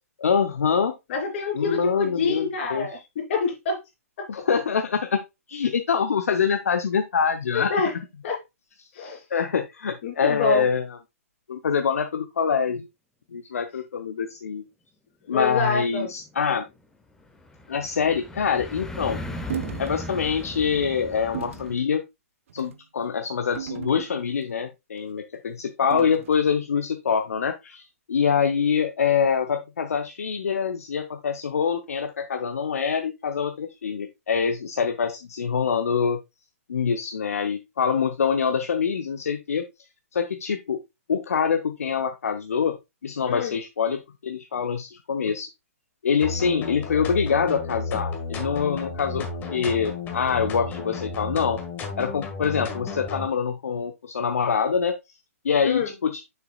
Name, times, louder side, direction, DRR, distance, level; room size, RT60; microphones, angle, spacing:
voice 1, 0.2-0.9 1.5-2.9 4.3-5.2 5.5-7.7 9.3-11.0 11.5-12.9 13.3-14.6 15.3-16.6 17.7-19.2 19.8-22.0 22.5-36.2 36.7-39.6 40.1-40.8 41.1-42.8 43.0-45.5 46.0-51.6 52.0-54.9 55.4-56.2, left 6 dB, 70° left, 7 dB, 0.7 m, -25 dB
voice 2, 1.1-3.8 4.2-4.3 7.5-7.9 8.2-8.4 8.9-9.2 10.0-10.7 15.3-16.1 43.3-43.6 55.6-55.9, left 4 dB, 50° left, 0 dB, 3.3 m, -26 dB
sound 1, 16.0-21.8, left 2 dB, 5° left, 1.0 m, -38 dB
sound 2, 19.5-19.9 20.4-20.6 21.3-21.7 22.5-22.8 23.6-24.5 25.9-26.4, right 9 dB, 55° right, 0.7 m, -35 dB
sound 3, 46.2-53.3, left 3 dB, 20° left, 1.6 m, -33 dB
6.9 x 6.7 x 2.3 m, 0.22 s
figure-of-eight pair, 125°, 8 cm